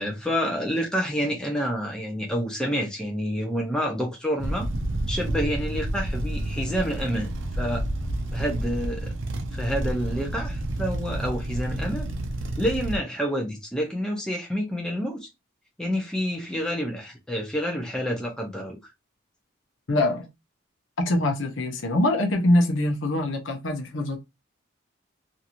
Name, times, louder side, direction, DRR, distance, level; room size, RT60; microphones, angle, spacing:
voice 1, 0.0-4.7 5.1-7.8 8.3-9.1 9.5-12.1 12.6-15.3 15.8-18.8, equal, 5° left, 0.6 m, -28 dB
sound 1, 4.4-13.0, right 1 dB, 70° right, 0.6 m, -30 dB
voice 2, 19.9-20.3 21.0-24.2, left 1 dB, 75° left, 0.7 m, -23 dB
2.9 x 2.6 x 2.5 m
head